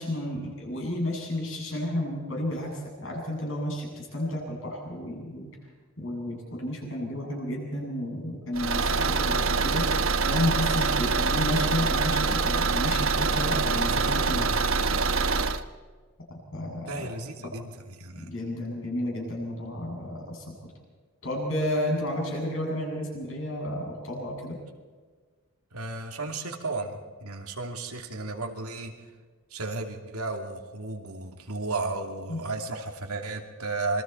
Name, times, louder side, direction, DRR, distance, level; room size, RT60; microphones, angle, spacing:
voice 1, 0.0-5.5 6.0-9.8 10.3-14.5 16.5-17.1 17.4-17.5 18.1-20.7 21.2-24.6 32.3-32.4, left 1 dB, 60° left, -1 dB, 7.9 m, -32 dB
Car / Engine, 8.5-15.6, right 4 dB, 65° right, 1.0 m, -25 dB
voice 2, 16.9-18.3 25.7-28.9 29.5-34.0, right 3 dB, 85° right, 3 dB, 2.8 m, -34 dB
27.5 x 22.5 x 4.6 m, 1.5 s
head